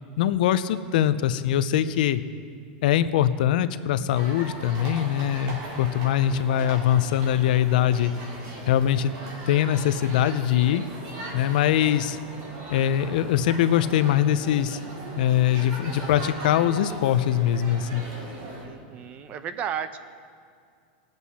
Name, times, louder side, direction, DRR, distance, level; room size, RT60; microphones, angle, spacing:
voice 1, 0.2-2.2 2.8-8.1 8.7-9.1 9.5-10.8 11.3-12.2 12.7-14.8 15.2-18.1, left 11 dB, 70° left, 13 dB, 0.6 m, -22 dB
sound 1, 4.1-18.6, right 1 dB, 50° right, 4.0 m, -39 dB
voice 2, 18.6-20.0, right 8 dB, 30° right, 11 dB, 0.7 m, -33 dB
20.5 x 8.0 x 4.2 m, 2.2 s
supercardioid pair, 145°, 5 cm